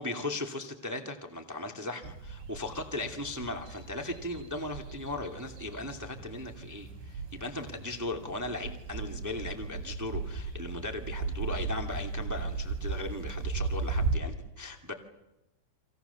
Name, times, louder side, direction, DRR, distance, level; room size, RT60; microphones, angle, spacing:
voice 1, 0.0-14.9, left 2 dB, 10° right, 4 dB, 0.9 m, -37 dB
sound 1, 2.0-14.2, right 4 dB, 80° right, 7.7 m, -36 dB
29.0 x 27.0 x 7.1 m, 0.96 s
omnidirectional pair, 4.9 m